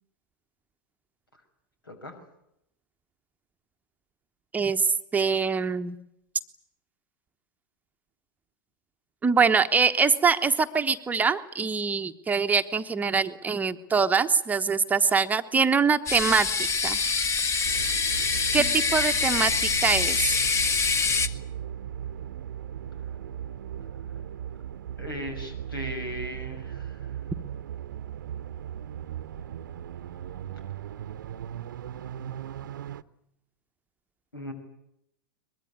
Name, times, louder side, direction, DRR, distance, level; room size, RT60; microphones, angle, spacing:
voice 1, 1.8-2.1 25.0-27.0 34.3-34.5, equal, 80° left, 7 dB, 6.2 m, -37 dB
voice 2, 4.5-6.0 9.2-17.0 18.5-20.3, right 5 dB, 15° right, 7 dB, 1.0 m, -24 dB
sound 1, 16.1-21.3, left 4 dB, 25° left, 1.4 m, -25 dB
sound 2, 17.6-33.0, right 9 dB, 60° right, 0.9 m, -37 dB
23.5 x 21.5 x 9.6 m, 0.80 s
figure-of-eight pair, 90°, 12 cm